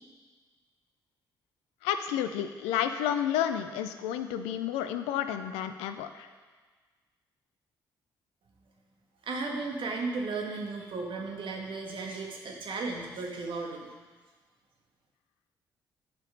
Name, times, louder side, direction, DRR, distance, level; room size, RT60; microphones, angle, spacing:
voice 1, 1.8-6.3, left 10 dB, 70° left, 9 dB, 0.5 m, -31 dB
voice 2, 9.2-13.9, right 3 dB, 50° right, 0 dB, 1.7 m, -35 dB
11.0 x 5.2 x 5.1 m, 1.4 s
figure-of-eight pair, 40°, 11 cm